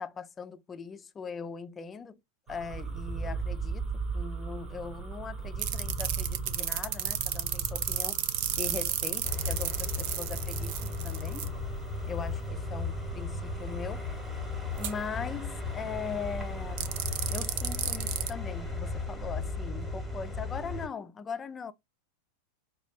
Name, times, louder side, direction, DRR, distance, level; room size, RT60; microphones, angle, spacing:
voice 1, 0.0-2.2 2.5-3.9 4.1-8.2 8.6-11.5 12.0-14.0 14.8-16.9 17.3-21.7, left 6 dB, 20° left, 0.4 m, -40 dB
sound 1, 2.5-17.5, right 4 dB, 25° right, 0.9 m, -40 dB
sound 2, 5.6-11.5 14.8-14.9 16.8-18.3, right 11 dB, 45° right, 0.4 m, -32 dB
sound 3, 9.2-20.9, left 3 dB, ahead, 1.0 m, -35 dB
5.0 x 2.3 x 2.4 m
figure-of-eight pair, 90°, 0 cm